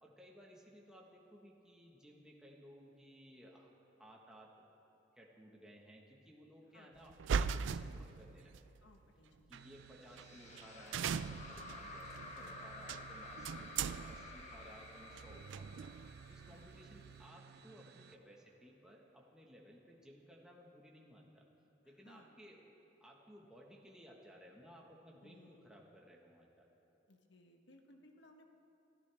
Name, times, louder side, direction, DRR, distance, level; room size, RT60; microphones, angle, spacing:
voice 1, 0.0-3.7 4.0-4.7 5.2-8.8 9.5-15.9 16.3-21.4 21.8-22.6 23.0-26.7, equal, 5° right, -2 dB, 1.4 m, -59 dB
sound 1, 7.1-8.6 9.5-9.6 10.2-10.3 10.5-10.6 10.9-17.2, right 6 dB, 80° right, 0.4 m, -40 dB
voice 2, 8.8-9.8 12.3-12.9 16.5-16.9 21.8-22.3 25.2-26.0 27.1-28.5, left 1 dB, 70° left, 3 dB, 1.4 m, -64 dB
sound 2, 9.5-18.2, right 7 dB, 60° right, 0.8 m, -59 dB
sound 3, 10.1-17.4, left 2 dB, 40° left, 1.3 m, -52 dB
24.5 x 14.0 x 3.5 m, 3.0 s
head